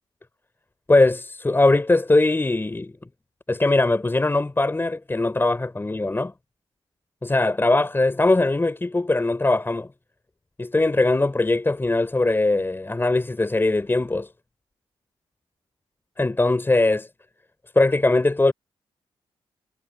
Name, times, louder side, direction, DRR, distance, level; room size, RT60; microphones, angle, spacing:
voice 1, 0.9-2.9 3.5-6.3 7.2-9.9 10.6-14.3 16.2-17.1 17.7-18.5, left 2 dB, 20° left, 4.8 m, -20 dB
cardioid pair, 75°, 10 cm